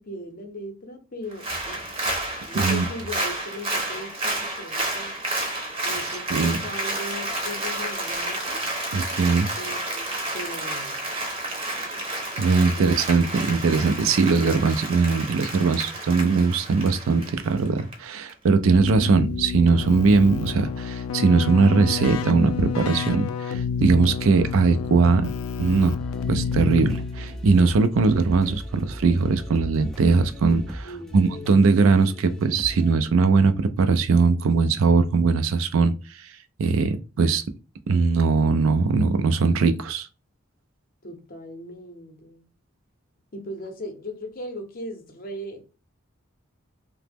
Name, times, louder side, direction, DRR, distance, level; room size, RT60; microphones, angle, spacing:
voice 1, 0.0-1.9 2.5-5.2 5.8-8.6 9.6-10.1 10.3-11.0 30.8-31.7 41.0-42.4 43.3-45.6, left 1 dB, 45° left, 0.6 m, -38 dB
Applause, 1.3-17.9 18.3-18.4, right 2 dB, 30° right, 0.7 m, -30 dB
voice 2, 2.5-2.8 6.3-6.6 8.9-9.5 12.4-25.3 25.6-26.0 26.3-36.3 36.6-37.4 37.9-40.1, right 4 dB, 70° right, 0.4 m, -20 dB
Keyboard (musical), 18.7-27.4, left 6 dB, 80° left, 0.3 m, -29 dB
sound 1, 26.0-32.9, equal, ahead, 0.3 m, -38 dB
2.8 x 2.0 x 3.3 m
head